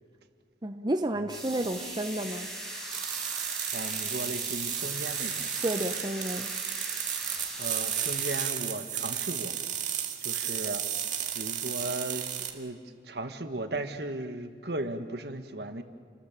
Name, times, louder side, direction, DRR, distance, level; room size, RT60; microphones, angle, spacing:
voice 1, 0.6-2.5 5.6-6.5, right 1 dB, 25° right, 6 dB, 0.8 m, -31 dB
sound 1, 1.3-8.5, right 1 dB, 5° left, 5.3 m, -39 dB
sound 2, 2.9-12.5, right 10 dB, 45° right, 2.1 m, -33 dB
voice 2, 3.7-5.3 7.6-9.5 10.2-10.8 11.3-12.8 13.0-15.8, right 2 dB, 65° right, 8 dB, 1.6 m, -36 dB
29.5 x 20.5 x 7.4 m, 2.1 s
head